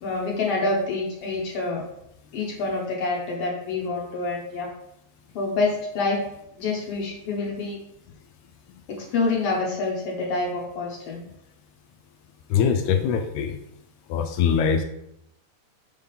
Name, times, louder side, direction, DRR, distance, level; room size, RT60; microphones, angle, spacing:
voice 1, 0.0-1.8 2.3-4.7 5.4-6.2 6.6-7.8 8.9-11.2, left 3 dB, 65° left, -1 dB, 1.8 m, -27 dB
voice 2, 12.5-13.6 14.1-14.8, left 7 dB, 80° left, 6 dB, 1.9 m, -22 dB
6.3 x 3.6 x 5.6 m, 0.79 s
omnidirectional pair, 3.5 m